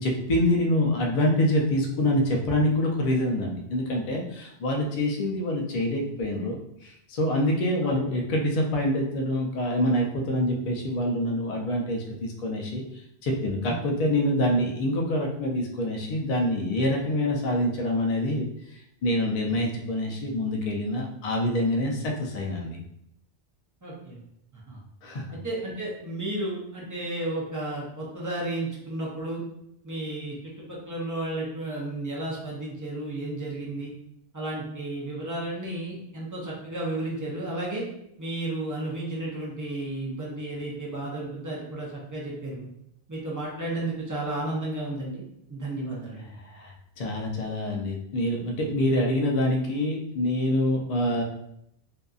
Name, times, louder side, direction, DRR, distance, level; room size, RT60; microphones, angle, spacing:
voice 1, 0.0-12.8 13.2-18.5 19.0-22.8 25.0-25.4 46.4-46.7 47.0-51.2, left 1 dB, 60° left, 0 dB, 0.4 m, -26 dB
voice 2, 23.8-24.2 24.5-24.8 25.3-29.4 29.8-33.9 34.3-37.8 38.2-42.7 43.1-45.2 45.5-46.3, right 2 dB, 25° right, -5 dB, 0.4 m, -33 dB
2.7 x 2.4 x 2.3 m, 0.76 s
omnidirectional pair, 1.2 m